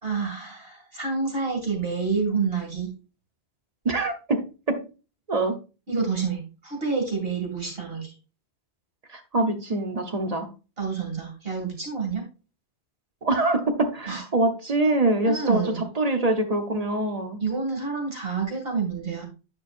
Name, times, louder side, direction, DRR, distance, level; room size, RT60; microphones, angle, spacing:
voice 1, 0.0-2.9 5.9-8.1 10.8-12.3 14.1-14.2 15.2-15.8 17.4-19.2, right 5 dB, 65° right, 1 dB, 2.7 m, -28 dB
voice 2, 3.8-4.8 5.3-5.6 9.1-10.5 13.2-17.4, right 2 dB, 40° right, 6 dB, 1.0 m, -24 dB
9.9 x 5.5 x 2.5 m, 0.32 s
omnidirectional pair, 1.1 m